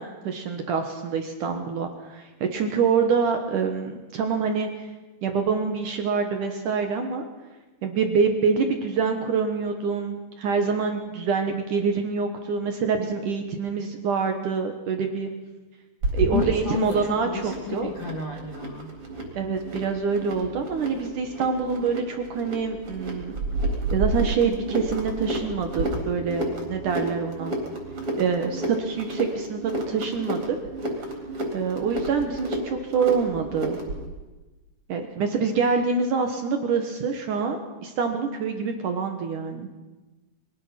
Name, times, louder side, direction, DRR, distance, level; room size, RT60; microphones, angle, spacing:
voice 1, 0.0-4.9 5.2-7.2 7.8-15.3 16.1-17.9 19.3-23.4 23.9-27.6 28.2-30.6 31.5-33.8 34.9-39.7, right 5 dB, 65° right, 5 dB, 2.2 m, -26 dB
sound 1, 16.0-34.0, right 1 dB, 35° right, 4.6 m, -31 dB
voice 2, 16.3-18.9, left 5 dB, 70° left, 2 dB, 1.1 m, -31 dB
23.5 x 19.0 x 5.9 m, 1.2 s
omnidirectional pair, 5.1 m